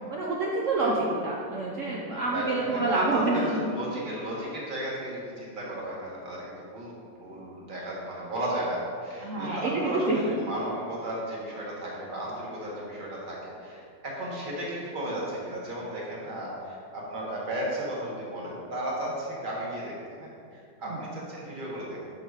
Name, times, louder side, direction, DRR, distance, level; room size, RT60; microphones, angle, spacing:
voice 1, 0.1-3.6 9.2-10.2 20.9-21.0, right 2 dB, 65° right, -3 dB, 0.7 m, -27 dB
voice 2, 2.3-6.9 7.2-19.9 20.2-22.1, right 1 dB, 30° right, -4 dB, 1.2 m, -34 dB
6.1 x 3.9 x 4.7 m, 2.4 s
omnidirectional pair, 2.0 m